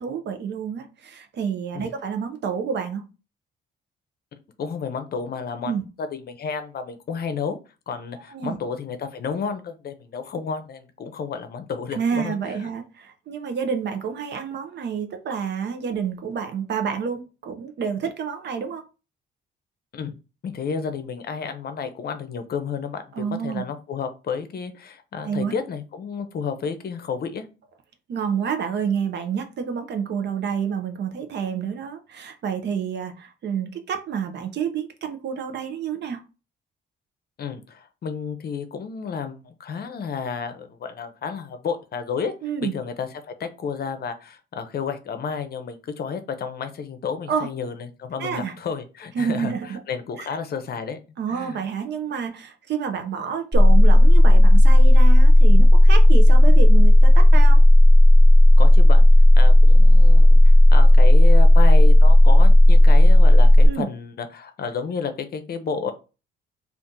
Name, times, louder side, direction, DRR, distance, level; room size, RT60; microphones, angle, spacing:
voice 1, 0.0-3.0 5.6-5.8 8.3-8.6 11.9-18.8 23.1-23.6 25.2-25.5 28.1-36.2 42.4-42.7 47.3-47.5 48.2-48.5 49.1-49.8 50.2-50.3 51.2-57.6 63.7-63.9, right 7 dB, 60° right, 0.7 m, -28 dB
voice 2, 4.6-5.7 6.0-7.6 7.9-12.7 19.9-20.1 20.4-27.5 37.4-42.3 42.6-43.1 43.4-51.0 51.3-51.6 58.6-59.1 59.4-65.9, left 6 dB, 50° left, 0.6 m, -31 dB
sound 1, 53.5-63.7, left 1 dB, 20° right, 0.5 m, -10 dB
2.7 x 2.5 x 3.6 m
cardioid pair, 90°, 20 cm